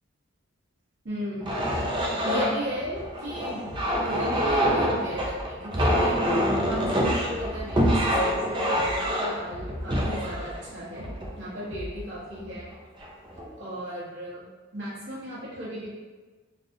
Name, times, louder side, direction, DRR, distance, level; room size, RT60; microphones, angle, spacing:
voice 1, 1.0-3.7 4.0-11.0 11.4-12.7 13.6-14.5 14.7-15.9, equal, 60° right, -9 dB, 1.2 m, -36 dB
sound 1, 1.4-11.7 12.3-12.6 13.0-13.5, equal, 25° right, 0.4 m, -26 dB
sound 2, 3.7-4.0 4.4-4.8 5.1-5.5 5.9-6.2 6.6-7.0 7.3-7.7 8.1-8.4 8.8-9.2 9.5-9.9 10.3-10.6 11.0-11.4 11.7-12.1, equal, 50° left, 0.3 m, -40 dB
3.3 x 2.3 x 2.6 m, 1.3 s
head